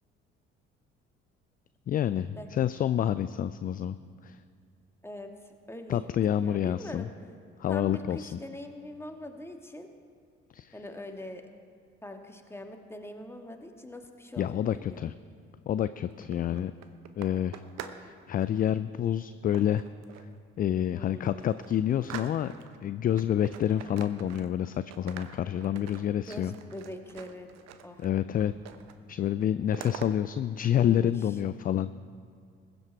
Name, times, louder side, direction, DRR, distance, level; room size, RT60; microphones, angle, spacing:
voice 1, 1.9-4.0 4.2-4.4 5.9-7.1 7.6-8.4 10.5-10.7 14.4-15.1 15.7-16.7 17.2-17.6 17.9-19.8 20.2-20.3 20.6-22.5 22.8-26.5 28.0-28.5 29.1-31.9, left 10 dB, 30° left, 14 dB, 0.4 m, -28 dB
voice 2, 5.0-7.1 7.7-9.9 10.7-11.5 12.0-15.1 16.5-16.9 20.9-21.5 26.3-27.5 27.8-28.0 30.7-31.1, left 1 dB, 10° left, 4 dB, 1.7 m, -43 dB
sound 1, 16.1-18.1 18.3-18.7 19.5-20.4 20.8-20.9 21.2-22.8 23.2-24.7 24.9-28.1 28.4-29.0 29.2-30.1, right 9 dB, 55° right, 1.0 m, -45 dB
21.0 x 7.9 x 4.6 m, 2.3 s
figure-of-eight pair, 50°, 31 cm